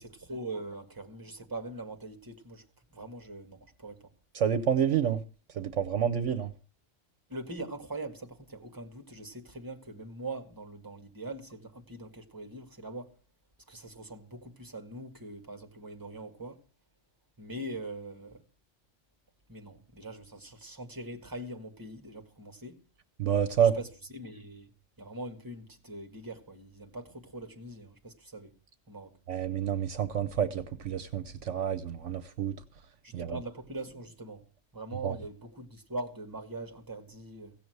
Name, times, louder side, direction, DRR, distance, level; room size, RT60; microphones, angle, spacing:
voice 1, 0.0-2.6 2.9-4.1 7.3-13.1 13.7-16.6 17.4-18.4 19.5-22.7 23.6-24.7 25.0-28.5 28.9-29.2 33.0-34.4 34.7-37.5, right 2 dB, 15° right, 1.9 m, -42 dB
voice 2, 4.3-5.2 5.5-6.5 23.2-23.7 29.3-32.5 33.1-33.4 35.0-35.1, right 8 dB, 70° right, 1.1 m, -28 dB
16.5 x 6.8 x 7.9 m
omnidirectional pair, 1.3 m